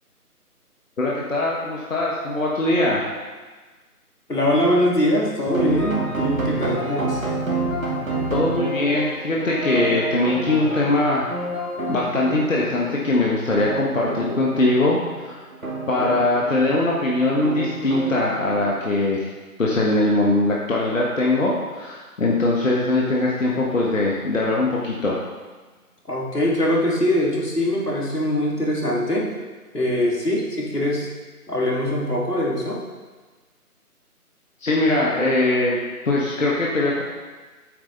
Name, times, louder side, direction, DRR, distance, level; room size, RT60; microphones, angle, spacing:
voice 1, 1.0-3.0 8.3-11.3 11.9-15.0 15.2-15.4 15.9-19.2 19.6-25.2 34.6-35.8 36.0-37.0, left 2 dB, 55° left, -4 dB, 1.6 m, -21 dB
voice 2, 4.3-7.2 26.1-29.3 29.7-31.1 31.5-32.8, left 1 dB, 80° left, -3 dB, 2.7 m, -22 dB
sound 1, 5.5-19.0, right 2 dB, 60° right, 2.4 m, -29 dB
8.8 x 8.7 x 4.0 m, 1.3 s
figure-of-eight pair, 155°, 46 cm